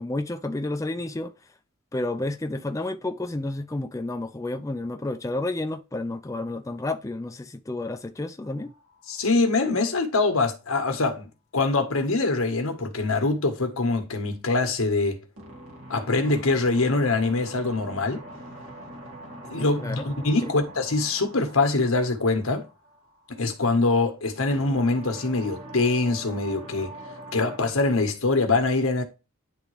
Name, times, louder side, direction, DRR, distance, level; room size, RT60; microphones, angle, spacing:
voice 1, 0.0-1.3 1.9-8.7 19.8-20.0 20.4-20.5, left 2 dB, 15° left, 0.4 m, -31 dB
sound 1, 8.4-9.1 15.4-23.4 24.5-27.6, right 1 dB, 85° right, 2.2 m, -43 dB
voice 2, 9.1-15.2 15.9-18.2 19.4-22.6 23.3-26.9 27.3-29.0, left 3 dB, 85° left, 1.5 m, -24 dB
10.0 x 3.6 x 3.3 m
head